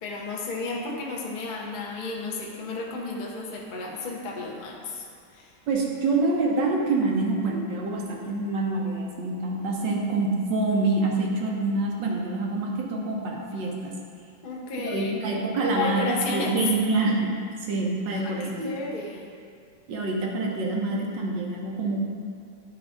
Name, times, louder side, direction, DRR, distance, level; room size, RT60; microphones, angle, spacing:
voice 1, 0.0-5.1 5.3-5.5 14.4-15.1 15.6-16.5 18.1-19.3, left 3 dB, 55° left, -1 dB, 0.5 m, -33 dB
voice 2, 5.7-13.9 14.8-17.3 17.6-18.8 19.9-22.1, right 2 dB, 65° right, -1 dB, 1.5 m, -26 dB
9.7 x 3.6 x 4.9 m, 2.3 s
omnidirectional pair, 2.2 m